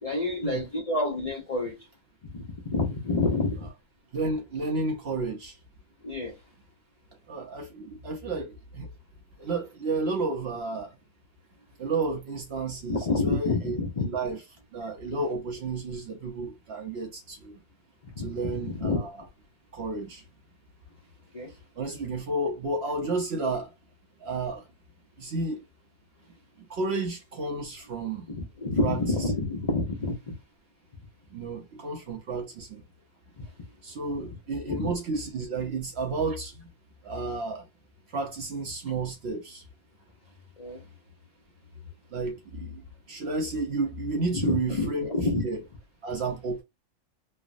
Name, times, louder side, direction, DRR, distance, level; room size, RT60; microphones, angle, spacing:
voice 1, 0.0-1.7 2.3-3.7 6.0-6.3 12.9-14.1 18.2-19.0 21.3-21.5 28.3-30.2 34.7-34.9 40.6-40.8 44.4-45.4, left 3 dB, 45° left, 0.5 m, -28 dB
voice 2, 4.1-5.6 7.3-8.9 9.4-10.9 11.8-14.4 14.7-17.6 18.2-19.2 19.7-20.2 21.8-23.7 24.2-24.7 25.2-25.6 26.6-28.3 28.8-29.0 31.3-32.8 33.8-36.7 37.0-37.6 38.1-39.6 42.1-42.8 43.1-45.1 45.4-45.6 46.0-46.6, right 3 dB, 60° right, 0.7 m, -31 dB
3.3 x 2.0 x 2.4 m
omnidirectional pair, 1.5 m